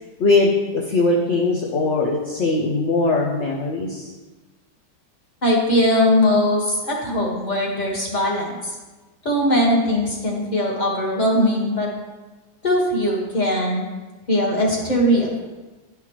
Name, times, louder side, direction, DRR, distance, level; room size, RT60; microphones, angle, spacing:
voice 1, 0.2-4.1, left 3 dB, 50° left, -2 dB, 0.9 m, -20 dB
voice 2, 5.4-8.8 9.2-11.9 12.6-13.9 14.3-15.3, left 1 dB, 25° left, -3 dB, 1.5 m, -20 dB
11.0 x 5.8 x 3.0 m, 1.2 s
omnidirectional pair, 1.8 m